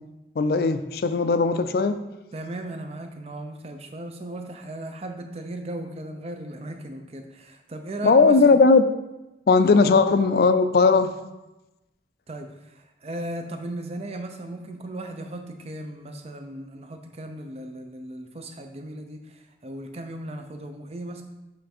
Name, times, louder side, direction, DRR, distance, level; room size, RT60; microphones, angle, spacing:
voice 1, 0.4-2.0 8.0-8.8 9.5-11.1, left 4 dB, 55° left, 10 dB, 0.4 m, -18 dB
voice 2, 2.3-8.6 12.3-21.2, right 1 dB, 35° right, 6 dB, 0.6 m, -37 dB
7.6 x 3.3 x 4.3 m, 1.0 s
head